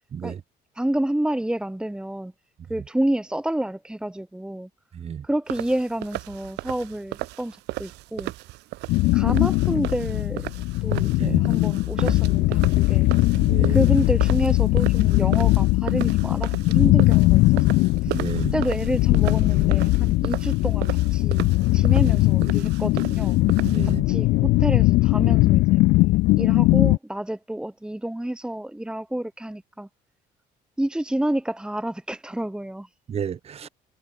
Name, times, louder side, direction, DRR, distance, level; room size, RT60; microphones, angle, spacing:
voice 1, 0.7-2.3 2.7-4.7 5.2-8.3 9.1-10.5 10.8-13.1 13.7-18.2 18.5-23.4 23.8-25.9 26.4-29.9 30.8-32.9 33.6-33.7, right 1 dB, 5° right, 1.4 m, -29 dB
voice 2, 4.9-5.2 10.9-11.5 13.4-13.8 18.1-18.5 23.6-24.0 33.1-33.7, right 8 dB, 35° right, 0.9 m, -31 dB
sound 1, 5.5-24.0, right 20 dB, 90° right, 3.4 m, -36 dB
sound 2, 8.9-27.0, left 20 dB, 80° left, 0.4 m, -20 dB
cardioid pair, 110°, 17 cm